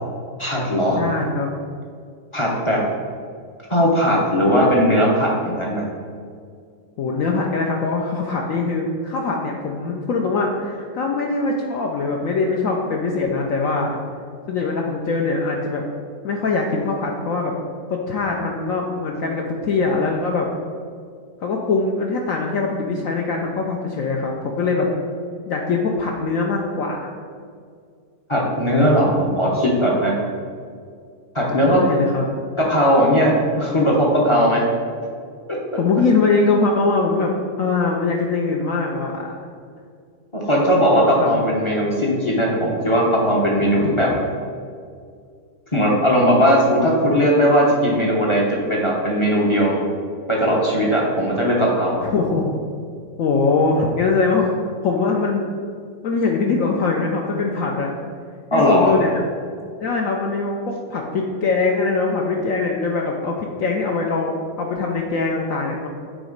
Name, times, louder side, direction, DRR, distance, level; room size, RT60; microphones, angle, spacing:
voice 1, 0.4-1.0 2.3-2.8 3.7-5.8 28.3-30.1 31.3-31.8 32.6-34.6 40.3-44.1 45.7-49.8 50.3-52.1 58.5-58.9, equal, 30° left, -3 dB, 0.6 m, -18 dB
voice 2, 1.0-1.5 7.0-14.0 14.5-15.8 16.2-17.5 17.9-20.5 21.4-24.9 25.5-27.1 31.4-32.2 35.8-37.3 37.6-39.3 41.2-41.3 43.8-44.1 52.0-52.5 53.2-54.5 54.8-55.5 56.0-57.9 58.5-59.2 59.8-65.9, left 4 dB, 65° left, 0 dB, 0.8 m, -22 dB
8.6 x 3.1 x 5.1 m, 2.2 s
omnidirectional pair, 1.9 m